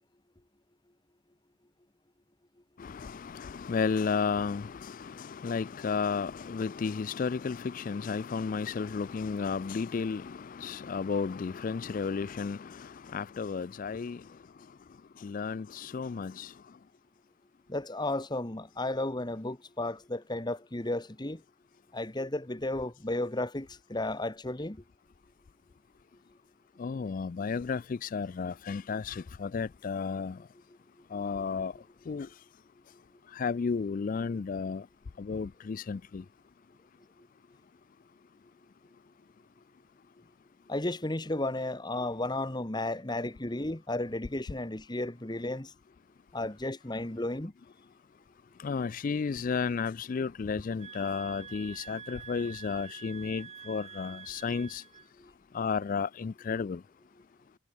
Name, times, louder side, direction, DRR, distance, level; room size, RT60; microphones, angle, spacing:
voice 1, 2.8-14.2 15.2-16.5 26.8-30.4 31.1-31.7 32.1-32.3 33.3-34.9 35.2-36.2 48.6-54.8 55.5-56.8, left 5 dB, 40° left, 0.3 m, -33 dB
voice 2, 17.7-21.4 21.9-24.8 40.7-45.7 46.3-47.5 55.2-55.3, left 2 dB, 20° left, 1.2 m, -33 dB
sound 1, 50.8-55.1, right 6 dB, 30° right, 2.6 m, -47 dB
head